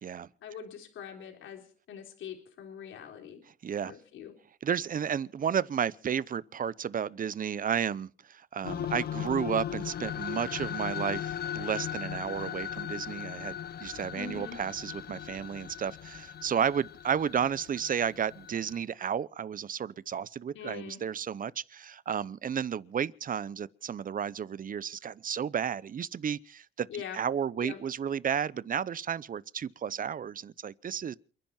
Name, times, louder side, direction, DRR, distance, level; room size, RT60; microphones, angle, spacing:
voice 1, 0.4-1.6 1.9-3.4 3.8-4.3 14.1-14.6 20.5-21.0 26.9-27.2 27.6-27.8, left 7 dB, 75° left, 3.9 m, -42 dB
voice 2, 3.6-3.9 4.6-26.9 27.1-31.2, right 8 dB, 45° right, 0.8 m, -32 dB
sound 1, 8.6-18.8, left 9 dB, 55° left, 0.8 m, -38 dB
28.5 x 10.5 x 4.4 m
cardioid pair, 90°, 20 cm